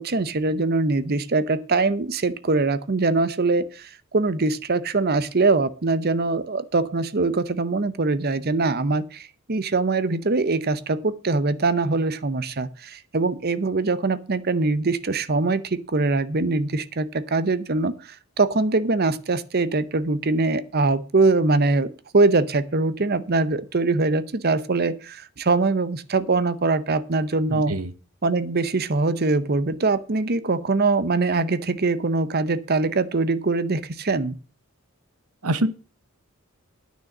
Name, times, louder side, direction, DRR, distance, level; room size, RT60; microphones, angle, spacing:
voice 1, 0.0-27.7 28.2-34.4, right 3 dB, 45° right, 14 dB, 0.8 m, -23 dB
voice 2, 27.5-27.9 35.4-35.7, right 1 dB, 75° right, 14 dB, 1.0 m, -24 dB
9.4 x 6.5 x 7.2 m, 0.36 s
head